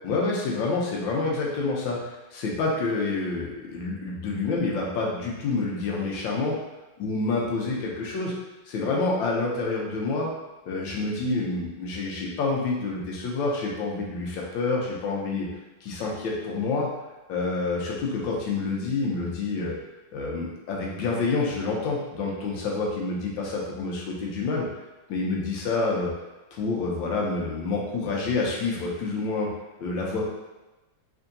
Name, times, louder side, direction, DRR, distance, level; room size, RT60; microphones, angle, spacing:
voice 1, 0.0-6.5 7.0-8.3 8.7-10.3 10.7-15.5 15.8-16.9 17.3-19.7 20.1-24.7 25.1-26.1 26.5-29.5 29.8-30.3, left 3 dB, 90° left, -2 dB, 1.5 m, -28 dB
3.7 x 3.4 x 2.6 m, 1.1 s
omnidirectional pair, 2.0 m